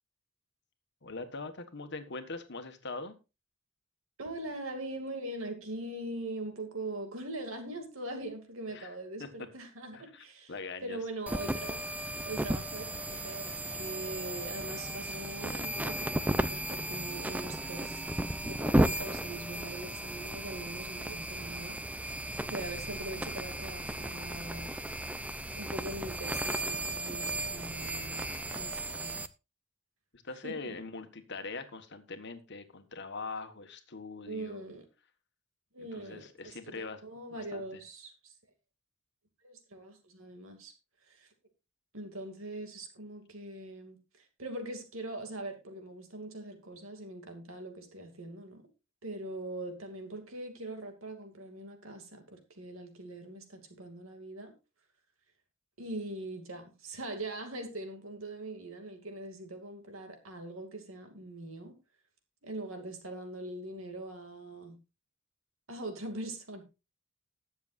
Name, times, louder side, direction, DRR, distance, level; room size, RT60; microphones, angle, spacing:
voice 1, 1.0-3.1 8.7-8.9 9.2-9.3 9.9-11.0 30.1-34.6 35.8-37.0 37.3-37.8, left 3 dB, 55° left, 7 dB, 1.5 m, -42 dB
voice 2, 4.2-10.5 10.8-11.9 12.2-18.0 18.4-24.8 25.5-29.2 30.4-30.8 34.3-34.9 35.7-38.3 39.4-40.7 41.0-41.3 41.9-48.7 49.0-54.5 55.8-61.8 62.4-64.8 65.7-66.6, right 2 dB, 70° right, 5 dB, 2.5 m, -42 dB
sound 1, 11.3-29.3, right 1 dB, 5° right, 0.5 m, -34 dB
20.0 x 7.3 x 2.6 m, 0.28 s
head